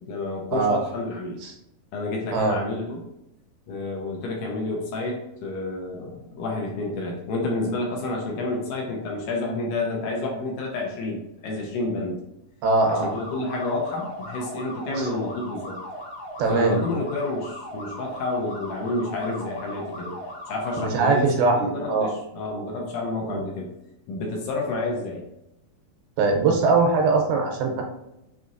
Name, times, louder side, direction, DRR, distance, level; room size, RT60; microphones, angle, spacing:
voice 1, 0.0-1.4 1.9-3.0 3.7-12.2 12.9-15.8 16.5-20.2 20.5-23.7 24.1-25.2, left 2 dB, 75° left, -1 dB, 2.1 m, -29 dB
voice 2, 12.6-13.1 15.0-15.1 16.4-16.8 20.8-22.1 23.3-23.4 26.2-27.8, right 3 dB, 85° right, 2 dB, 2.6 m, -21 dB
sound 1, 12.8-20.9, equal, 60° left, 0.6 m, -38 dB
6.0 x 2.8 x 2.6 m, 0.85 s
omnidirectional pair, 4.1 m